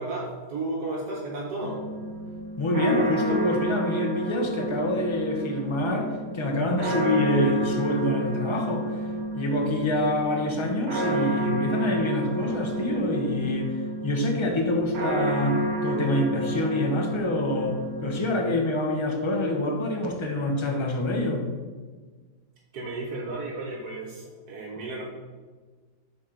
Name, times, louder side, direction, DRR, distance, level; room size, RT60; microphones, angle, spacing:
voice 1, 0.0-1.9 22.7-25.0, right 2 dB, 80° right, -4 dB, 1.4 m, -33 dB
sound 1, 1.6-18.2, right 2 dB, 50° right, 1.0 m, -30 dB
voice 2, 2.6-8.8 9.3-21.4, left 1 dB, 30° left, 1 dB, 0.6 m, -26 dB
6.2 x 4.4 x 3.8 m, 1.4 s
omnidirectional pair, 1.7 m